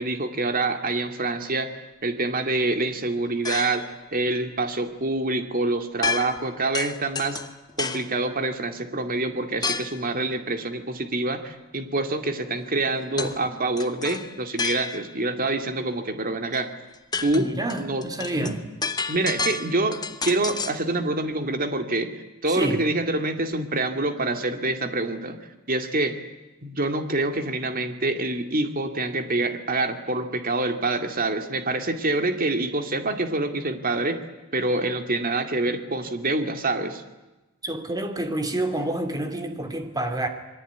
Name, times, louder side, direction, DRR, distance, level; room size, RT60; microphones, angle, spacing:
voice 1, 0.0-1.7 2.0-7.4 7.8-16.7 17.2-17.5 17.8-18.1 18.3-18.6 19.1-22.1 22.4-25.4 25.7-26.2 26.6-34.2 34.5-37.0, right 2 dB, 40° right, 6 dB, 2.4 m, -26 dB
sound 1, 3.4-4.0 6.0-6.5 6.7-8.1 9.6-10.0 13.2-13.4 13.8-15.2 16.5-16.6 16.9-20.8, left 5 dB, 20° left, 1.0 m, -30 dB
voice 2, 17.3-18.6 22.5-22.8 37.6-40.3, right 1 dB, 15° right, 6 dB, 2.9 m, -28 dB
27.0 x 22.5 x 9.5 m, 1.1 s
head